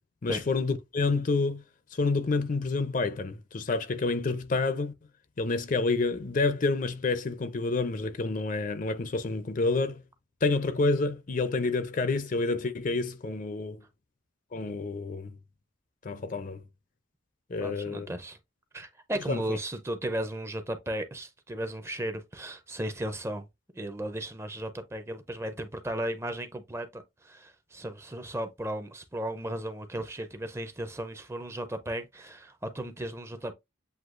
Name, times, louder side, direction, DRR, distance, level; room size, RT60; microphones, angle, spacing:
voice 1, 0.2-1.6 1.9-4.9 5.4-10.0 10.4-13.8 14.5-15.3 16.0-16.6 17.5-18.1 19.3-19.6, left 3 dB, 40° left, 0.5 m, -28 dB
voice 2, 17.6-18.4 18.7-23.5 23.7-33.5, right 1 dB, 15° right, 0.5 m, -35 dB
7.8 x 2.7 x 2.5 m
head